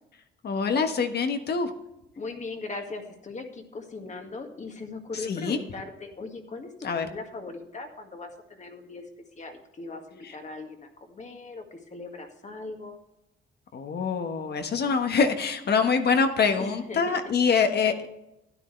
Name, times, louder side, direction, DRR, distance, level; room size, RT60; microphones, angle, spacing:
voice 1, 0.4-1.7 5.1-5.6 6.8-7.1 10.2-10.3 13.7-18.1, left 5 dB, 55° left, 7 dB, 1.4 m, -25 dB
voice 2, 2.2-9.0 9.4-13.0 16.6-17.2, left 3 dB, 35° left, 4 dB, 2.0 m, -39 dB
12.5 x 10.0 x 3.3 m, 0.88 s
cardioid pair, 90°, 20 cm